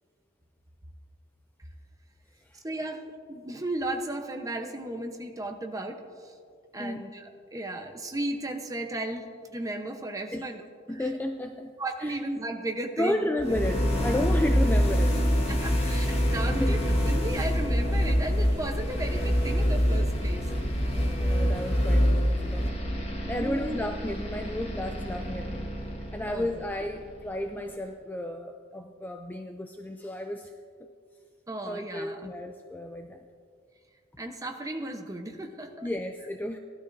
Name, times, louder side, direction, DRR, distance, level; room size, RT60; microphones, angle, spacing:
voice 1, 2.6-6.4 6.7-10.6 10.9-11.1 11.8-13.3 15.5-20.5 23.2-23.8 26.3-26.5 31.5-32.3 34.2-35.9, right 1 dB, 15° right, 4 dB, 0.8 m, -35 dB
voice 2, 10.9-11.7 12.0-12.2 13.0-15.2 16.1-16.2 16.6-16.7 21.2-22.7 23.3-25.8 26.1-30.5 31.7-33.2 35.8-36.6, left 1 dB, 10° left, 5 dB, 0.3 m, -32 dB
sound 1, 13.4-27.3, equal, 30° left, 1.6 m, -26 dB
17.5 x 12.5 x 2.6 m, 2.2 s
head